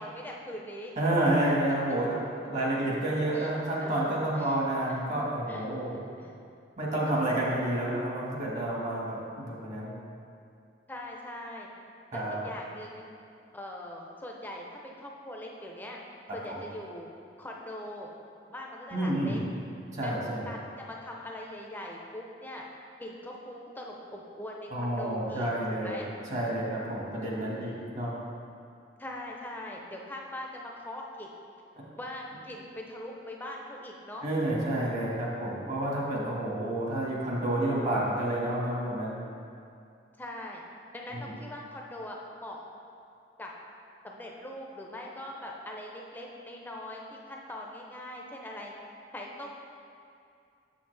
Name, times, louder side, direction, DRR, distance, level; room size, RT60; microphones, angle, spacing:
voice 1, 0.0-0.9 2.0-2.1 3.3-3.5 3.8-4.0 4.4-4.6 4.9-5.0 5.5-5.7 6.2-6.4 10.9-11.7 12.1-13.1 13.5-16.0 16.3-17.1 17.4-18.1 18.5-19.4 20.0-20.2 20.5-22.6 23.0-26.1 27.6-27.8 29.0-31.3 32.0-34.2 40.2-40.6 40.9-42.6 43.4-43.5 44.0-47.0 47.3-48.7 49.1-49.6, left 1 dB, 10° left, -1 dB, 0.6 m, -41 dB
voice 2, 1.0-2.2 2.5-5.9 6.8-10.0 12.1-12.4 16.5-16.6 18.9-19.4 19.9-20.4 24.7-26.0 26.3-28.2 34.2-39.2 41.1-41.3, right 1 dB, 45° right, -4 dB, 1.6 m, -29 dB
7.2 x 7.1 x 3.3 m, 2.5 s
head